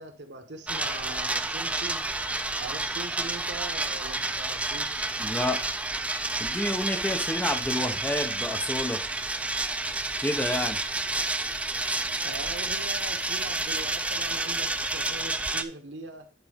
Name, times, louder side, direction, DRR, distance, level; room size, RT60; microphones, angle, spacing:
voice 1, 0.0-2.1 2.6-5.1 12.2-16.3, right 2 dB, 80° right, 5 dB, 1.2 m, -41 dB
sound 1, 0.7-15.6, right 2 dB, 5° right, 0.3 m, -30 dB
voice 2, 5.2-5.6 6.4-9.0 10.2-10.8, left 1 dB, 10° left, 4 dB, 0.8 m, -29 dB
9.2 x 4.2 x 3.5 m, 0.37 s
head